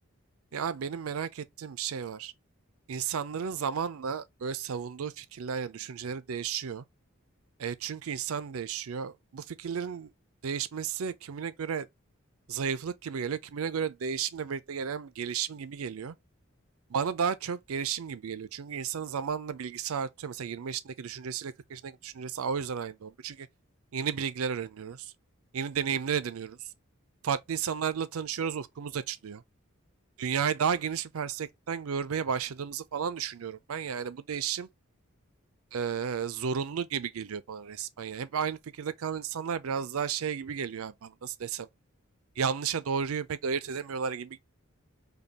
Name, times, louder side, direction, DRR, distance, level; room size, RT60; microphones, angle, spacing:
voice 1, 0.5-2.3 2.9-6.8 7.6-10.1 10.4-11.9 12.5-16.1 16.9-23.5 23.9-25.1 25.5-26.6 27.2-29.4 30.2-34.7 35.7-41.7 42.4-44.4, right 7 dB, 85° right, 0.5 m, -33 dB
5.2 x 2.3 x 2.8 m
head